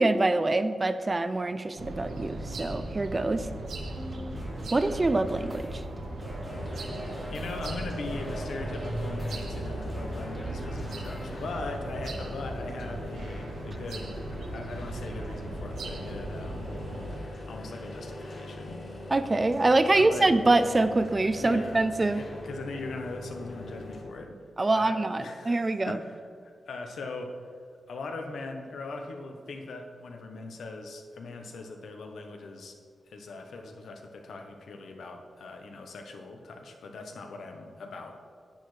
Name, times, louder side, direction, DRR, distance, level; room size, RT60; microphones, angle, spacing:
voice 1, 0.0-3.5 4.7-5.8 19.1-22.2 24.6-26.0, right 2 dB, 30° right, 11 dB, 0.4 m, -25 dB
sound 1, 1.8-17.2, right 1 dB, 90° right, 1.1 m, -37 dB
sound 2, 3.9-11.3, equal, 5° right, 1.4 m, -46 dB
sound 3, 6.5-24.0, left 1 dB, 70° left, 2.4 m, -42 dB
voice 2, 7.3-14.1 14.5-16.7 17.5-18.8 19.9-20.3 21.4-21.8 22.1-24.4 24.7-26.1 26.4-27.4 27.9-32.8 33.1-38.2, left 3 dB, 85° left, 3 dB, 0.9 m, -40 dB
10.0 x 8.5 x 3.3 m, 2.1 s
wide cardioid pair, 95°, 0 cm